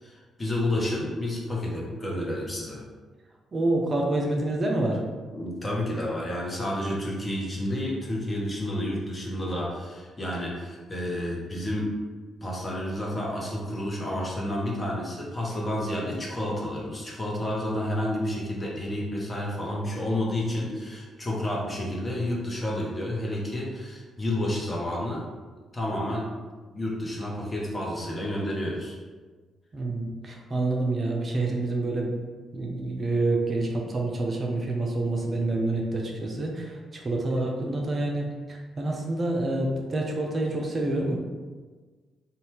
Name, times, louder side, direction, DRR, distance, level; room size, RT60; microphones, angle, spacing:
voice 1, 0.0-2.8 5.3-11.9 12.4-25.2 25.7-26.3 26.7-29.0, left 1 dB, 30° left, -3 dB, 0.9 m, -30 dB
voice 2, 3.5-5.0 29.7-32.1 32.5-41.2, right 2 dB, 40° right, 0 dB, 0.5 m, -27 dB
2.7 x 2.3 x 3.3 m, 1.4 s
figure-of-eight pair, 40°, 0 cm